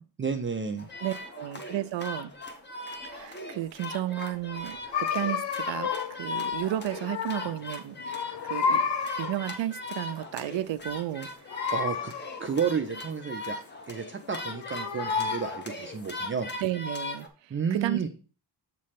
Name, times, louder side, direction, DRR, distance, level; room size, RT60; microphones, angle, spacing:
voice 1, 0.2-0.9 11.7-12.1 12.4-16.5 17.5-18.1, right 6 dB, 30° right, 0.4 m, -31 dB
sound 1, 0.8-17.3, left 3 dB, 25° left, 0.8 m, -39 dB
voice 2, 1.0-2.3 3.0-8.8 9.2-11.3 16.6-18.1, right 13 dB, 90° right, 0.6 m, -33 dB
sound 2, 4.9-6.2 6.6-7.7 8.0-9.5 11.5-12.6 14.2-15.7, left 6 dB, 70° left, 0.7 m, -31 dB
7.5 x 3.2 x 5.7 m
wide cardioid pair, 175°, 43 cm